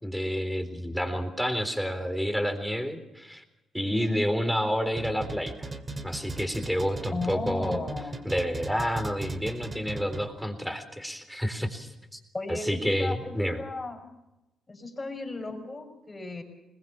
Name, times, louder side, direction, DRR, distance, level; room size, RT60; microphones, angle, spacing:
voice 1, 0.0-3.4 3.7-5.7 6.0-7.8 8.2-12.2 12.5-13.6, equal, ahead, 8 dB, 3.8 m, -29 dB
voice 2, 3.9-4.2 7.1-8.1 12.3-14.0 14.7-16.4, left 3 dB, 25° left, 3 dB, 6.1 m, -35 dB
sound 1, 5.0-10.5, right 3 dB, 30° right, 2.4 m, -38 dB
21.5 x 20.5 x 7.2 m, 0.96 s
cardioid pair, 75°, 0 cm